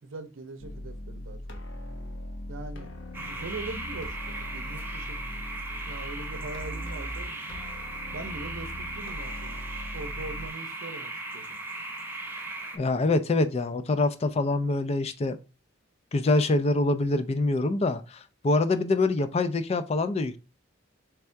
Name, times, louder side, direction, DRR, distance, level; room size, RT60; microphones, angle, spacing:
voice 1, 0.0-1.4 2.5-5.2 5.9-7.4 8.1-9.6 9.9-11.6, right 3 dB, 80° right, 0.7 m, -41 dB
sound 1, 0.6-10.5, left 1 dB, 70° left, 1.0 m, -40 dB
sound 2, 3.1-12.8, right 2 dB, 10° right, 0.8 m, -38 dB
voice 2, 12.7-15.4 16.1-20.4, left 2 dB, 30° left, 0.4 m, -25 dB
3.6 x 3.4 x 4.4 m
head